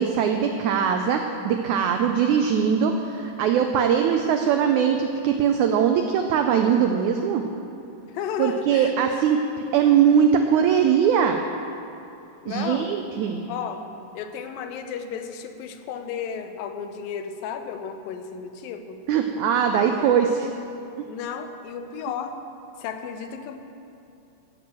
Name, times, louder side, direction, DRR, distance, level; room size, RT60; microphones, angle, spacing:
voice 1, 0.0-7.4 8.4-9.4 9.7-11.4 12.5-13.5 19.1-20.3, right 8 dB, 85° right, 5 dB, 1.7 m, -21 dB
voice 2, 8.1-9.2 12.4-12.9 13.5-13.8 14.1-19.0 19.7-20.1 21.1-22.4 22.8-23.6, left 7 dB, 85° left, 7 dB, 2.5 m, -33 dB
15.0 x 6.1 x 7.5 m, 2.7 s
omnidirectional pair, 4.1 m